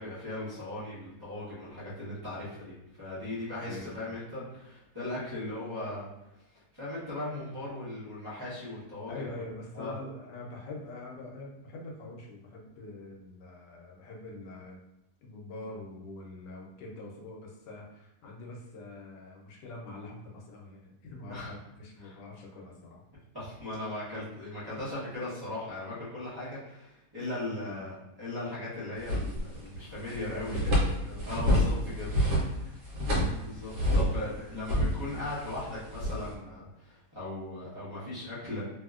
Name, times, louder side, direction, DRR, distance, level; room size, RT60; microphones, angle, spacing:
voice 1, 0.0-2.7 3.0-6.1 6.5-9.3 9.7-9.9 21.3-21.5 22.0-22.1 23.3-32.8 33.4-38.6, left 2 dB, 20° right, -12 dB, 0.9 m, -38 dB
voice 2, 3.5-4.2 9.1-14.8 15.2-23.0 27.6-27.9 30.4-30.9 31.5-31.7 33.9-34.1, left 2 dB, 90° left, -1 dB, 1.3 m, -44 dB
sound 1, 29.0-29.8 30.1-34.3 34.6-36.3, equal, 60° right, 1.2 m, -28 dB
2.9 x 2.7 x 2.4 m, 0.89 s
omnidirectional pair, 1.8 m